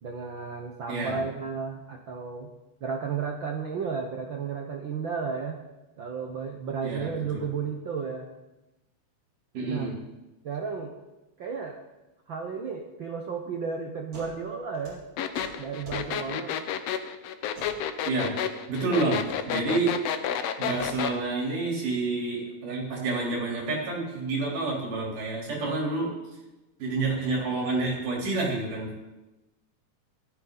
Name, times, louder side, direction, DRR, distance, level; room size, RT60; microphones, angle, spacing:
voice 1, 0.0-2.5 2.8-5.6 6.0-8.3 9.6-9.9 10.4-10.9 11.4-11.8 12.3-15.0 15.6-16.6, right 5 dB, 65° right, 2 dB, 1.2 m, -33 dB
voice 2, 6.8-7.5 9.5-9.9 18.1-18.3 18.7-19.9 20.6-26.1 26.8-29.0, right 3 dB, 85° right, -3 dB, 5.3 m, -29 dB
sound 1, 14.1-14.4 14.6-16.1 17.5-17.8 19.1-19.4 20.6-20.9, right 2 dB, 50° right, 5.3 m, -44 dB
sound 2, 15.2-21.2, left 9 dB, 70° left, 1.7 m, -30 dB
17.0 x 13.0 x 4.0 m, 1.0 s
omnidirectional pair, 3.6 m